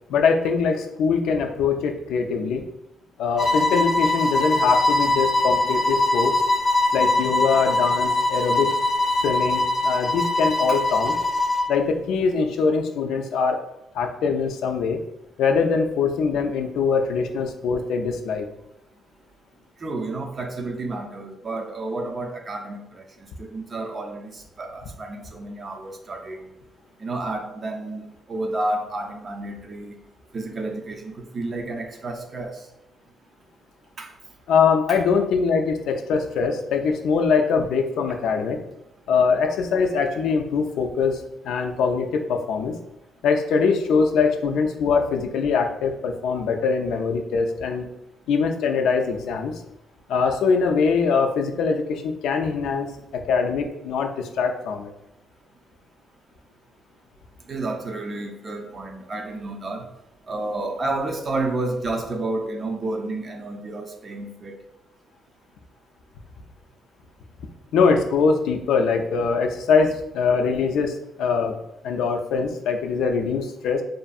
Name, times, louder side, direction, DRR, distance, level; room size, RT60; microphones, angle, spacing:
voice 1, 0.1-2.6 3.2-6.3 6.9-8.7 9.2-11.1 11.7-13.6 13.9-15.0 15.4-18.5 34.5-38.6 39.1-42.8 43.2-47.9 48.3-49.5 50.1-52.9 53.1-54.9 67.7-71.6 71.8-73.8, left 5 dB, 80° left, 5 dB, 0.3 m, -22 dB
sound 1, 3.4-11.7, left 2 dB, 20° left, 0.7 m, -22 dB
voice 2, 19.8-23.0 23.4-26.4 27.0-30.0 30.3-32.6 34.0-34.1 34.9-35.0 57.5-59.8 60.3-64.6, right 2 dB, 40° right, 4 dB, 0.4 m, -30 dB
2.6 x 2.4 x 2.3 m, 0.87 s
cardioid pair, 90°, 0 cm